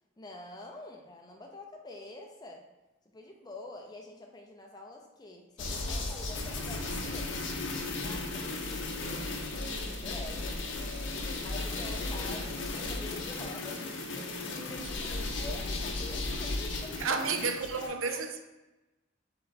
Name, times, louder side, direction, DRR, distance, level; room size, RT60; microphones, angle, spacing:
voice 1, 0.2-2.7 3.1-7.4 8.0-8.5 9.8-10.6 11.4-13.9 14.6-17.2 17.8-18.2, left 2 dB, 20° left, 0.5 m, -46 dB
sound 1, 5.6-17.9, left 2 dB, 60° left, 0.6 m, -35 dB
voice 2, 17.0-18.4, right 5 dB, 80° right, 0.5 m, -32 dB
3.8 x 3.3 x 4.1 m
head